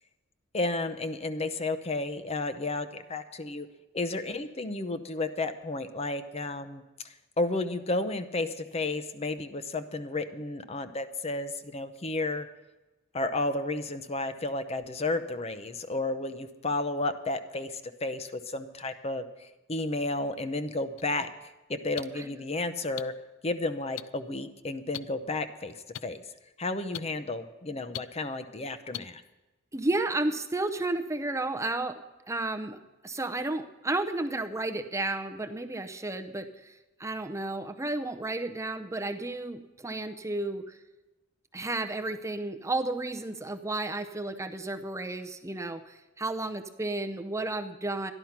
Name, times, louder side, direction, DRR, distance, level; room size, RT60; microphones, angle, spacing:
voice 1, 0.5-3.7 3.9-6.8 7.4-12.5 13.1-21.3 21.7-23.1 23.4-26.2 26.6-29.2, left 2 dB, 30° left, 10 dB, 0.7 m, -32 dB
sound 1, 21.0-21.1 22.0-22.1 23.0-23.1 24.0-24.1 24.9-25.0 25.9-26.0 26.9-27.0 27.9-28.0 28.9-29.0, left 12 dB, 65° left, 0.4 m, -35 dB
voice 2, 29.7-32.0 32.3-32.8 33.0-36.7 37.0-40.8 41.5-48.1, right 2 dB, 15° right, 7 dB, 0.6 m, -32 dB
13.0 x 11.0 x 5.8 m, 1.1 s
head